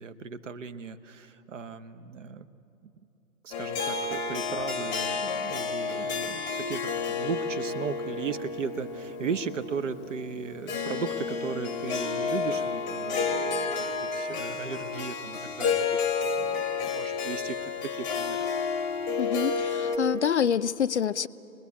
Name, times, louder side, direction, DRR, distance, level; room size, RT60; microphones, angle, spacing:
voice 1, 0.0-2.5 3.4-18.4, right 5 dB, 55° right, 1.2 m, -36 dB
Harp, 3.5-20.0, left 5 dB, 10° left, 1.0 m, -31 dB
voice 2, 19.2-21.3, left 8 dB, 55° left, 0.5 m, -26 dB
24.0 x 20.5 x 8.4 m
hypercardioid pair, 150°, 44 cm